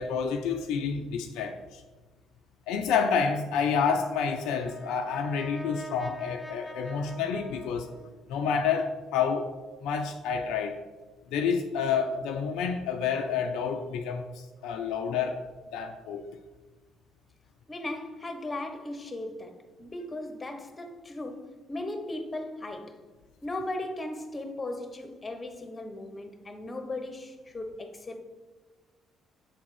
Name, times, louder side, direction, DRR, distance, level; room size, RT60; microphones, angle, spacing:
voice 1, 0.0-1.8 2.7-7.9 8.3-9.5 9.8-10.8 11.3-15.4 15.7-16.3, left 6 dB, 75° left, 0.4 m, -29 dB
Brass instrument, 3.9-8.4, equal, 5° left, 0.7 m, -43 dB
voice 2, 17.7-23.0 23.4-28.2, left 2 dB, 30° left, 1.1 m, -37 dB
7.2 x 3.6 x 4.8 m
hypercardioid pair, 55°, 0 cm